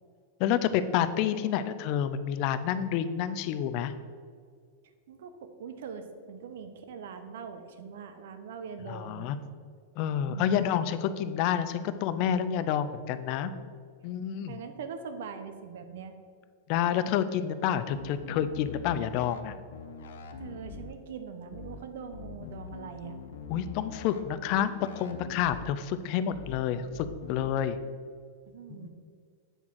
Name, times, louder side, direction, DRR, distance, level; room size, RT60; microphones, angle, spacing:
voice 1, 0.4-3.9 8.9-9.4 10.0-13.5 14.0-14.6 16.7-19.6 23.5-27.8 28.7-28.9, left 9 dB, 45° left, 11 dB, 0.4 m, -29 dB
voice 2, 5.1-9.3 10.3-10.7 14.5-16.2 20.4-23.2 28.5-28.9, right 6 dB, 75° right, 8 dB, 0.8 m, -42 dB
sound 1, 17.9-19.4 19.7-20.9 21.5-21.8 22.1-24.2 24.5-25.7 26.3-26.6 26.9-27.5, left 5 dB, 80° left, 0.7 m, -43 dB
8.0 x 3.6 x 6.1 m, 2.1 s
supercardioid pair, 140°, 0 cm